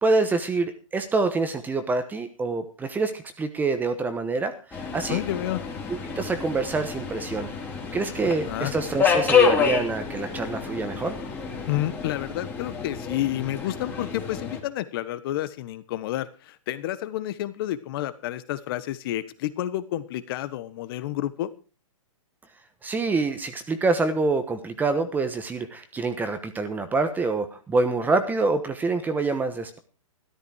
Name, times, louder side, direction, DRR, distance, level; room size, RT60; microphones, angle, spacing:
voice 1, 0.0-5.2 5.9-7.5 7.9-11.2 22.8-29.8, right 3 dB, 10° right, 9 dB, 1.1 m, -26 dB
Subway metro underground, 4.7-14.6, left 6 dB, 10° left, 2.9 m, -27 dB
voice 2, 5.1-5.6 8.2-8.7 11.7-21.5, left 13 dB, 40° left, 15 dB, 1.3 m, -30 dB
13.5 x 13.0 x 4.8 m, 0.35 s
hypercardioid pair, 140°, 18 cm